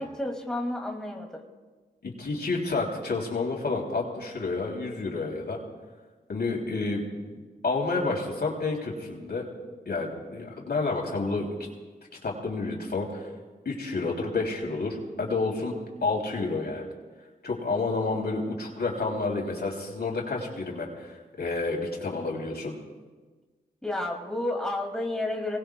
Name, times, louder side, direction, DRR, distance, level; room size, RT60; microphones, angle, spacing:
voice 1, 0.0-1.4 23.8-25.6, left 1 dB, 5° left, 0 dB, 2.5 m, -31 dB
voice 2, 2.0-5.6 6.3-7.4 7.6-9.5 9.8-11.5 12.2-13.3 13.6-15.7 16.0-16.9 17.4-22.7, left 3 dB, 65° left, -1 dB, 3.1 m, -30 dB
24.0 x 19.0 x 2.3 m, 1.3 s
cardioid pair, 50°, 18 cm